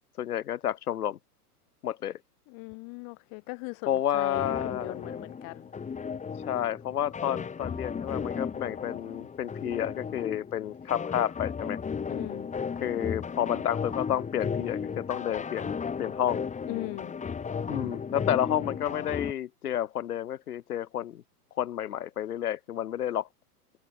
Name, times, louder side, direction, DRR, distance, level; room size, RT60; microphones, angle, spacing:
voice 1, 0.2-1.2 1.8-2.2 3.8-5.0 6.5-11.8 12.8-16.5 17.7-21.2 21.6-23.3, left 11 dB, 70° left, 2.8 m, -30 dB
voice 2, 2.5-3.9 4.1-5.6 12.1-12.5 16.7-17.1, left 36 dB, 45° left, 6.7 m, -39 dB
sound 1, 4.3-19.3, left 6 dB, 15° left, 6.2 m, -35 dB
hypercardioid pair, 115°, 47 cm